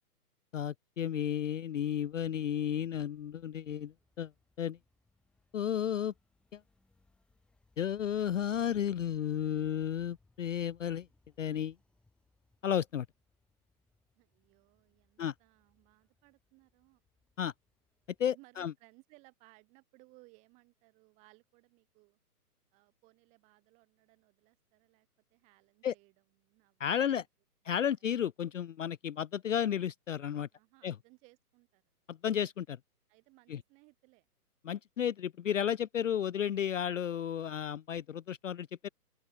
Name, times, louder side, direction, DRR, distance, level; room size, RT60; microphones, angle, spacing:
voice 1, 0.5-4.3 4.6-4.8 5.5-6.1 6.5-6.6 7.8-11.1 11.4-11.8 12.6-13.1 15.2-15.3 17.4-17.5 18.2-18.7 25.8-25.9 26.8-27.2 27.6-30.5 30.8-31.0 32.1-32.8 33.5-33.6 34.6-38.9, left 9 dB, 55° left, 0.6 m, -33 dB
sound 1, 1.9-18.2, left 2 dB, ahead, 1.8 m, -72 dB
voice 2, 14.2-17.0 18.3-22.2 22.7-27.2 30.5-31.8 33.1-34.3, right 26 dB, 15° right, 2.0 m, -63 dB
open air
hypercardioid pair, 165°, 46 cm